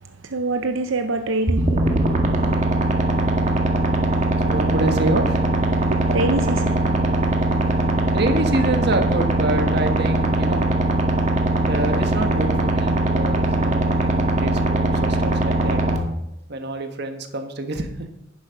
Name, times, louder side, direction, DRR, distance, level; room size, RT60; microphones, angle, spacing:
voice 1, 0.0-2.2 5.7-7.3, right 2 dB, 85° right, 7 dB, 0.7 m, -26 dB
sound 1, 1.5-16.0, right 2 dB, 40° right, 1.6 m, -20 dB
voice 2, 4.4-5.4 8.1-10.7 11.7-15.8 16.5-17.9, right 2 dB, 60° right, 6 dB, 1.4 m, -26 dB
11.0 x 10.0 x 5.2 m, 0.87 s
head